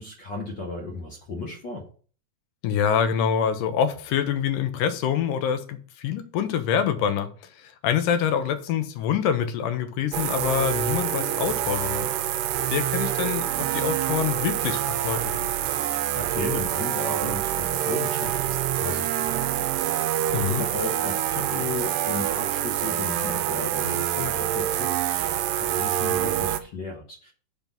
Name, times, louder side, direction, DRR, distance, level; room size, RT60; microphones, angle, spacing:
voice 1, 0.0-1.8 15.8-27.3, left 3 dB, 65° left, 1.1 m, -35 dB
voice 2, 2.6-12.1 12.7-15.5 20.3-20.7, left 8 dB, 85° left, 2.4 m, -26 dB
sound 1, 10.1-26.6, right 11 dB, 90° right, 2.2 m, -26 dB
6.1 x 5.3 x 5.9 m
omnidirectional pair, 3.8 m